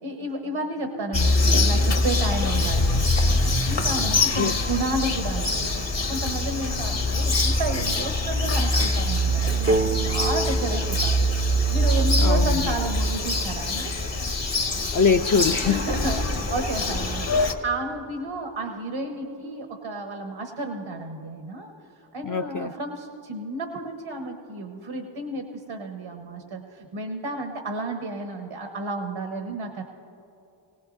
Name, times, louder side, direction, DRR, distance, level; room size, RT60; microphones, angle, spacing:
voice 1, 0.0-14.0 15.7-21.7 22.1-29.8, right 2 dB, 85° right, 3 dB, 1.2 m, -32 dB
Bird vocalization bird call bird song, 1.1-17.5, left 1 dB, 65° left, 1.3 m, -23 dB
sound 1, 9.7-13.3, right 2 dB, 25° right, 0.4 m, -30 dB
voice 2, 12.2-12.7 14.9-15.8 22.2-22.7, left 5 dB, 45° left, 6 dB, 0.4 m, -23 dB
20.5 x 17.5 x 2.6 m, 2.8 s
cardioid pair, 45°, 47 cm